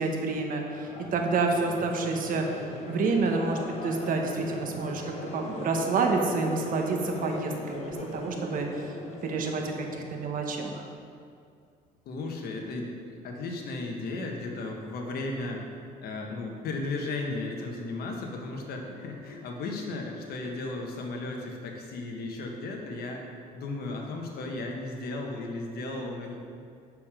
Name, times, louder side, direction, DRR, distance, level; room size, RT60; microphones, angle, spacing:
voice 1, 0.0-2.5 2.9-8.9 9.2-10.8, right 3 dB, 55° right, 2 dB, 1.2 m, -28 dB
Crowd, 0.7-10.9, left 2 dB, 40° left, 1.2 m, -40 dB
voice 2, 12.0-15.6 16.0-23.2 23.5-26.3, left 2 dB, 70° left, 1 dB, 1.4 m, -35 dB
6.8 x 6.8 x 5.0 m, 2.3 s
cardioid pair, 110°, 17 cm